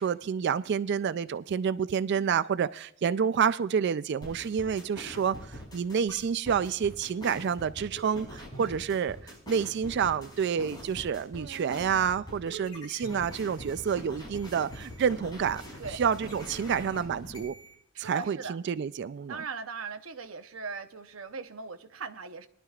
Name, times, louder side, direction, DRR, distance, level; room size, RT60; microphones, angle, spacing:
voice 1, 0.0-15.6 15.9-17.5 18.0-19.4, right 7 dB, 55° right, 0.3 m, -29 dB
sound 1, 4.2-17.7, equal, 20° left, 5.5 m, -43 dB
voice 2, 11.3-12.1 15.8-16.0 17.9-18.6 19.3-22.5, right 5 dB, 85° right, 0.8 m, -40 dB
22.0 x 11.5 x 2.4 m
head